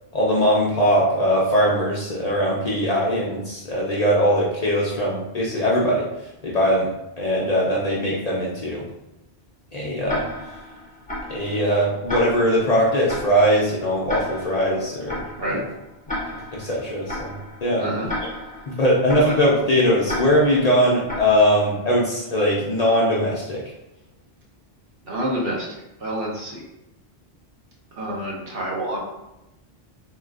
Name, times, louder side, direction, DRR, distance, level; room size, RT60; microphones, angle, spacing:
voice 1, 0.1-8.8 9.7-10.3 11.3-15.6 16.5-17.4 17.6-17.9 18.7-23.7, equal, 45° left, -5 dB, 0.6 m, -21 dB
Tick-tock, 10.1-21.9, left 1 dB, 10° left, 0.7 m, -34 dB
voice 2, 17.8-18.1 25.0-25.6 26.0-26.6 28.0-29.0, right 1 dB, 60° right, -4 dB, 1.1 m, -27 dB
3.7 x 2.4 x 2.4 m, 0.92 s
omnidirectional pair, 1.1 m